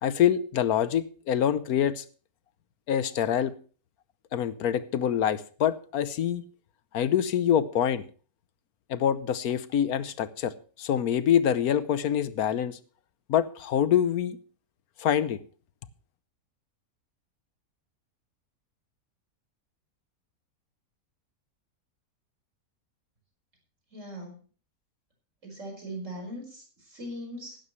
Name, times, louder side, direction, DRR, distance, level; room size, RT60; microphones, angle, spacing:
voice 1, 0.0-2.0 2.9-3.5 4.3-6.4 6.9-8.0 8.9-12.8 13.3-14.4 15.0-15.4, left 9 dB, 85° left, 14 dB, 1.3 m, -25 dB
voice 2, 23.9-24.3 25.4-27.6, equal, 55° right, 2 dB, 5.4 m, -40 dB
15.5 x 12.0 x 3.2 m, 0.39 s
omnidirectional pair, 1.5 m